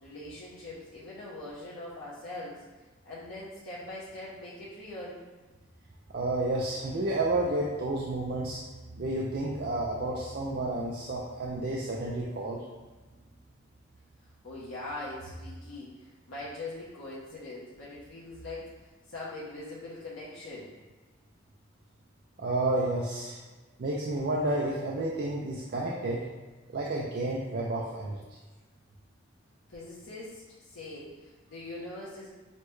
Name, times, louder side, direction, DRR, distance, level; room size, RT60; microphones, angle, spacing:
voice 1, 0.0-2.6 3.0-5.2 14.4-18.7 19.1-20.7 29.7-32.3, left 2 dB, 90° left, -8 dB, 0.8 m, -42 dB
voice 2, 6.1-8.6 8.9-12.6 22.4-23.4 23.8-26.2 26.7-28.2, right 2 dB, 50° right, -3 dB, 0.4 m, -30 dB
6.4 x 2.2 x 3.1 m, 1.2 s
head